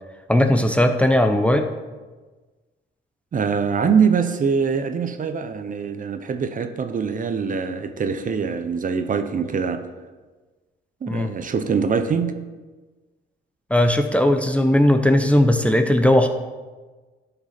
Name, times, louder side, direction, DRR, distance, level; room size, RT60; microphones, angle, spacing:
voice 1, 0.3-1.7 11.1-11.3 13.7-16.3, left 1 dB, 5° left, 5 dB, 0.7 m, -17 dB
voice 2, 3.3-9.9 11.0-12.4, right 6 dB, 40° right, 9 dB, 0.8 m, -23 dB
12.0 x 5.6 x 4.3 m, 1.3 s
cardioid pair, 90°, 20 cm